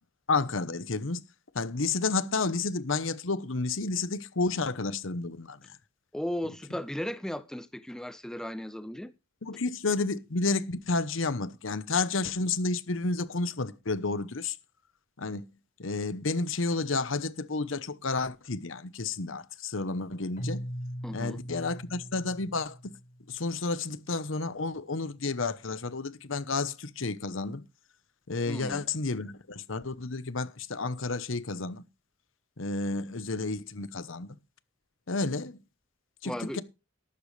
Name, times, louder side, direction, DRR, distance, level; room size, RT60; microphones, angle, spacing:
voice 1, 0.3-1.2 1.5-5.8 9.4-14.6 15.2-15.5 15.8-20.7 21.1-23.0 23.3-27.6 28.3-31.8 32.6-34.3 35.1-35.6 36.2-36.6, left 3 dB, 75° left, 1.0 m, -31 dB
voice 2, 6.1-9.1 21.0-21.4 28.5-28.9 36.2-36.6, equal, 5° left, 0.5 m, -36 dB
Keyboard (musical), 20.4-23.3, equal, 40° left, 5.9 m, -39 dB
13.5 x 12.0 x 3.3 m
head